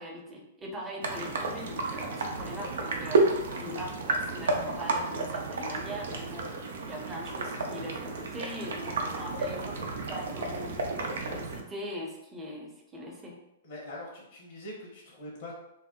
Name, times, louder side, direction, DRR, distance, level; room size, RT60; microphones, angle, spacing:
voice 1, 0.0-6.4 6.9-10.9 11.2-13.4, equal, 15° right, -1 dB, 0.7 m, -41 dB
sound 1, 1.0-11.6, right 3 dB, 80° right, 0.5 m, -31 dB
voice 2, 13.6-15.5, left 1 dB, 70° left, -3 dB, 0.9 m, -43 dB
2.7 x 2.1 x 3.6 m, 0.86 s
hypercardioid pair, 135°, 0 cm